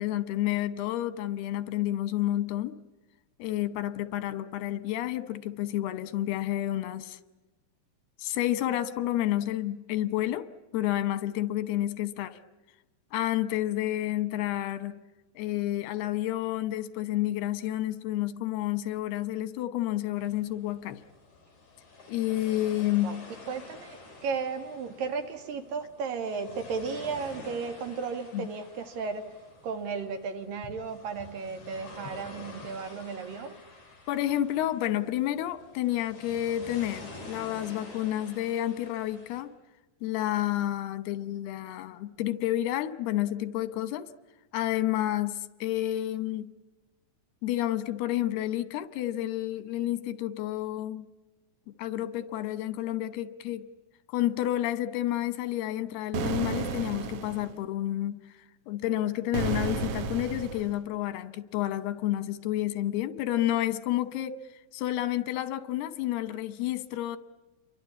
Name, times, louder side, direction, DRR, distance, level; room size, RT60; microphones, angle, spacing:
voice 1, 0.0-2.8 3.4-7.2 8.2-10.5 10.7-12.4 13.1-15.0 15.4-21.0 22.1-23.2 28.3-28.5 34.1-39.5 40.0-44.1 44.5-46.5 47.4-51.0 51.8-53.7 54.1-58.2 58.7-64.4 64.7-67.2, left 13 dB, 90° left, 3.0 m, -30 dB
sound 1, 20.2-39.4, left 3 dB, 50° left, 7.2 m, -48 dB
voice 2, 23.5-29.3 29.6-33.6, right 5 dB, 65° right, 3.5 m, -34 dB
sound 2, 56.1-57.5 59.3-60.8, right 5 dB, 90° right, 1.3 m, -32 dB
28.5 x 24.0 x 8.4 m
omnidirectional pair, 4.4 m